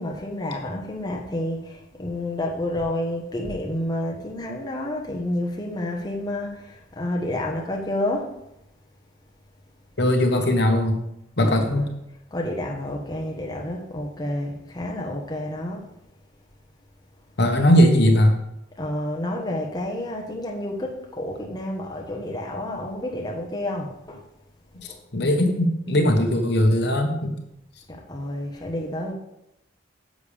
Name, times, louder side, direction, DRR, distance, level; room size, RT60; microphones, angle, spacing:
voice 1, 0.0-8.3 11.4-11.8 12.3-15.9 18.8-24.3 24.8-25.0 27.9-29.1, left 1 dB, 20° left, 1.2 m, -30 dB
voice 2, 10.0-11.0 11.4-11.9 17.4-18.4 24.8-27.3, equal, 60° left, 1.1 m, -19 dB
10.5 x 7.1 x 3.5 m
head